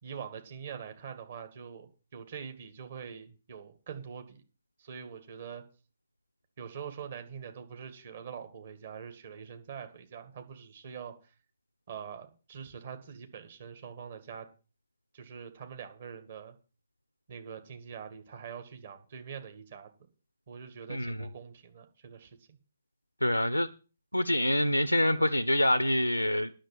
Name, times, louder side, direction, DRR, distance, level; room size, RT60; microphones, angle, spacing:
voice 1, 0.0-4.4 4.8-5.6 6.6-11.3 11.9-14.5 15.1-16.6 17.3-19.9 20.5-22.6, right 7 dB, 50° right, 6 dB, 2.1 m, -44 dB
voice 2, 23.2-23.7 24.1-26.5, left 1 dB, 90° left, 13 dB, 0.6 m, -26 dB
10.0 x 6.4 x 7.7 m, 0.35 s
figure-of-eight pair, 130°, 0 cm